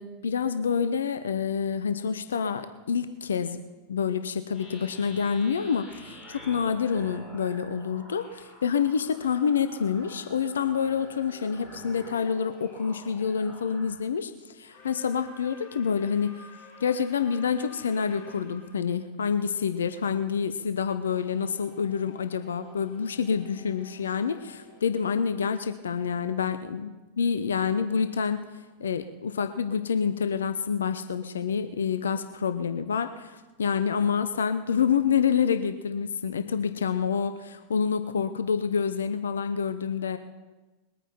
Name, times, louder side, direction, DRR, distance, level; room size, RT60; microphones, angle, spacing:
voice 1, 0.0-3.6 3.9-16.5 16.8-26.9 27.2-28.4 28.8-40.2, left 6 dB, 70° left, 10 dB, 0.7 m, -27 dB
sound 1, 4.5-14.0, equal, ahead, 4.8 m, -49 dB
sound 2, 9.1-12.9 14.6-18.8 21.1-25.9, left 4 dB, 30° left, 3.6 m, -52 dB
21.5 x 9.1 x 4.4 m, 1.2 s
figure-of-eight pair, 90°, 0 cm